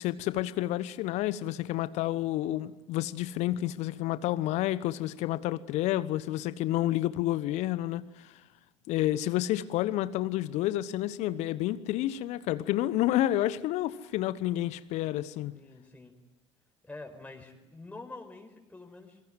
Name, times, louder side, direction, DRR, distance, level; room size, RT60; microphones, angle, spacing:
voice 1, 0.0-8.3 8.9-15.6, left 14 dB, 55° left, 1.1 m, -30 dB
voice 2, 15.5-16.2 16.8-19.2, left 2 dB, 10° left, 4.8 m, -46 dB
27.0 x 23.5 x 7.8 m
figure-of-eight pair, 65°, 14 cm